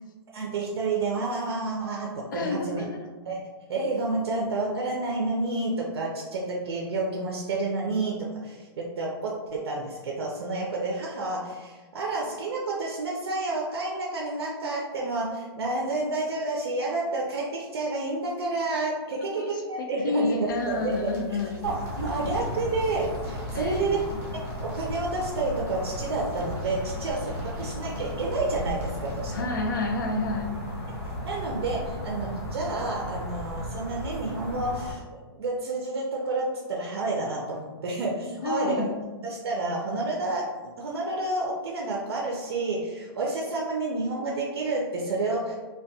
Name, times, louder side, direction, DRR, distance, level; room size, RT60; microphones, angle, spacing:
voice 1, 0.3-2.9 3.2-21.1 21.6-24.0 24.3-29.5 31.2-38.9 39.2-45.5, right 2 dB, 70° right, -1 dB, 0.4 m, -30 dB
voice 2, 2.3-3.1 19.1-21.6 23.5-24.2 29.3-30.5 38.4-38.9, left 3 dB, 50° left, 4 dB, 0.4 m, -30 dB
sound 1, 20.3-29.7, left 3 dB, 15° right, 0.6 m, -43 dB
sound 2, 21.6-34.9, equal, 85° left, 1.1 m, -35 dB
2.3 x 2.1 x 2.6 m, 1.3 s
hypercardioid pair, 170°, 14 cm